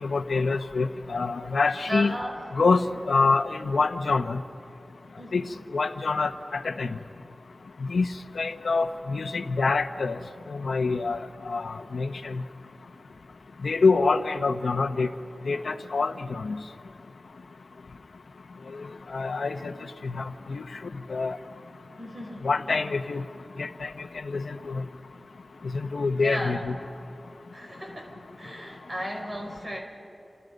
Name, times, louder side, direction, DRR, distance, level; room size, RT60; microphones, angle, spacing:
voice 1, 0.0-2.1 2.5-4.4 5.3-5.4 5.7-6.9 7.9-8.1 8.4-10.2 10.5-11.2 11.5-12.4 13.6-15.1 15.5-16.6 19.1-19.7 20.0-20.6 21.1-21.4 22.4-23.2 23.6-23.9 24.2-24.8 25.7-26.7, left 4 dB, 90° left, 9 dB, 1.1 m, -26 dB
voice 2, 1.9-2.4 5.2-5.5 22.0-22.5 26.2-26.6 27.5-29.8, equal, 30° right, 0 dB, 5.5 m, -35 dB
29.5 x 29.0 x 5.4 m, 2.8 s
wide cardioid pair, 90°, 0 cm